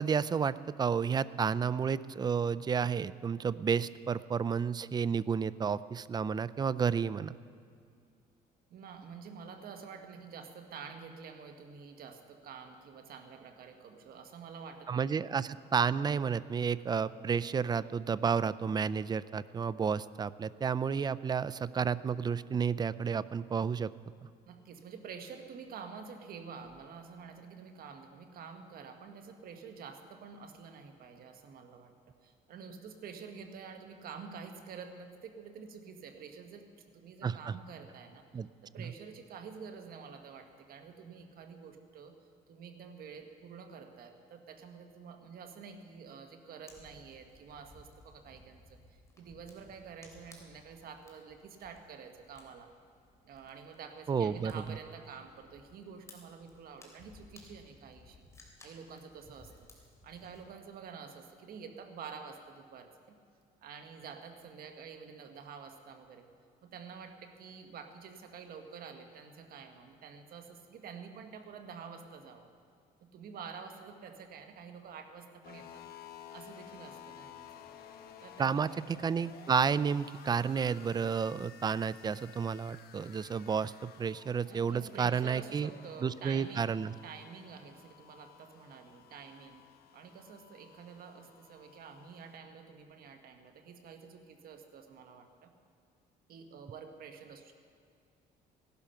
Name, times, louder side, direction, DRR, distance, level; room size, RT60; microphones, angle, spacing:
voice 1, 0.0-7.3 14.9-23.9 37.2-37.5 38.3-38.5 54.1-54.8 78.4-85.7 86.0-86.9, right 6 dB, 25° right, 17 dB, 0.4 m, -31 dB
voice 2, 8.7-15.3 24.5-31.9 32.2-36.7 36.9-38.2 38.6-42.1 42.5-52.7 53.2-58.2 58.6-63.2 63.6-66.3 66.6-72.5 73.1-75.8 76.3-77.6 78.2-78.8 84.5-86.8 87.0-89.6 89.9-95.5 96.3-97.5, right 6 dB, 60° right, 6 dB, 1.6 m, -48 dB
Fire, 46.7-60.4, left 2 dB, 15° left, 3.2 m, -59 dB
sound 1, 75.4-92.4, left 9 dB, 65° left, 1.1 m, -54 dB
17.0 x 12.0 x 5.8 m, 2.3 s
cardioid pair, 110°, 17 cm